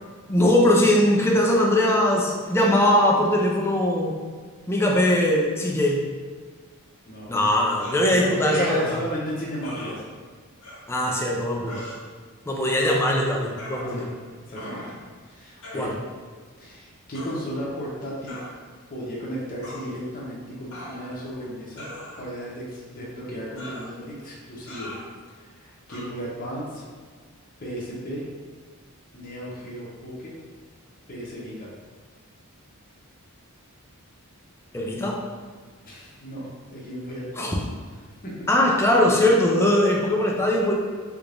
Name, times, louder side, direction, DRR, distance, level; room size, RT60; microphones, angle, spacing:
voice 1, 0.3-4.2 4.7-6.0 7.3-8.9 10.9-11.9 12.5-14.1 15.7-15.9 34.7-35.3 37.4-37.5 38.5-40.7, left 1 dB, 10° left, -1 dB, 0.4 m, -21 dB
voice 2, 7.0-7.5 8.1-10.0 13.9-14.1 14.5-15.0 15.3-15.9 16.6-18.4 18.9-21.9 22.2-24.9 25.3-26.9 27.6-28.3 29.1-30.3 31.1-31.7 35.8-37.5 38.2-38.5, equal, 40° left, -6 dB, 0.8 m, -35 dB
sound 1, 7.8-8.1 9.6-9.9 10.6-10.8 11.6-12.0 12.8-13.1 13.6-14.2 14.6-15.0 15.6-15.9 17.1-17.4 18.3-18.5 19.6-19.9 20.7-21.3 21.8-22.4 23.6-23.9 24.7-25.1 25.9-26.1, left 1 dB, 65° left, 0.9 m, -39 dB
3.4 x 3.3 x 2.5 m, 1.6 s
head